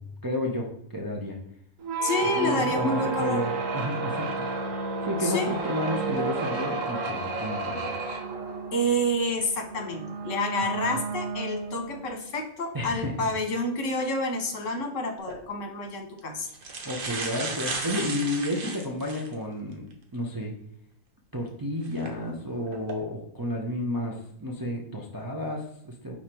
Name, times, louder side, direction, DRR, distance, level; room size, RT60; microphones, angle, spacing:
voice 1, 0.2-1.4 2.3-4.3 5.0-8.2 10.8-11.0 12.7-13.3 16.8-20.5 21.3-26.2, left 1 dB, 25° right, -1 dB, 0.5 m, -31 dB
sound 1, 1.8-12.1, right 4 dB, 65° right, 1.2 m, -31 dB
voice 2, 2.0-3.4 5.2-5.5 8.7-16.5, left 1 dB, 60° left, 3 dB, 1.5 m, -29 dB
sound 2, 15.2-15.4 16.2-16.3 16.5-19.3 19.9-20.0 21.9-22.1 22.7-22.9, right 3 dB, 45° right, 1.0 m, -34 dB
5.2 x 4.3 x 4.4 m, 0.77 s
omnidirectional pair, 1.5 m